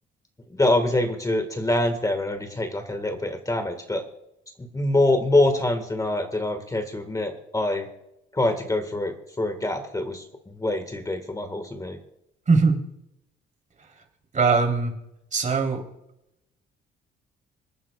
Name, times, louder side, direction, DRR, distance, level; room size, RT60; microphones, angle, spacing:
voice 1, 0.5-4.0 4.6-7.9 8.3-12.0, left 1 dB, 15° left, 6 dB, 1.6 m, -25 dB
voice 2, 12.5-12.8 14.3-14.9 15.3-15.8, right 4 dB, 40° right, 3 dB, 3.3 m, -20 dB
26.0 x 9.2 x 2.3 m, 0.82 s
cardioid pair, 90°, 20 cm